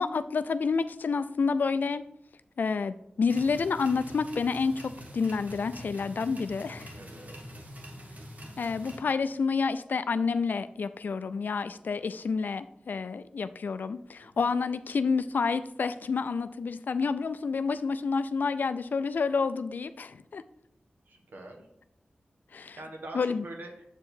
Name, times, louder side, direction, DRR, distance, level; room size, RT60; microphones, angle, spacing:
voice 1, 0.0-2.0 2.6-7.0 8.6-20.4 22.5-22.8 23.1-23.4, left 5 dB, 75° left, 12 dB, 0.3 m, -29 dB
sound 1, 3.3-9.0, equal, 55° right, 1.4 m, -45 dB
voice 2, 6.9-7.6 14.2-14.5 21.0-21.7 22.7-24.0, right 1 dB, 85° right, 3 dB, 1.3 m, -45 dB
7.5 x 4.6 x 4.4 m, 0.79 s
wide cardioid pair, 80°, 3 cm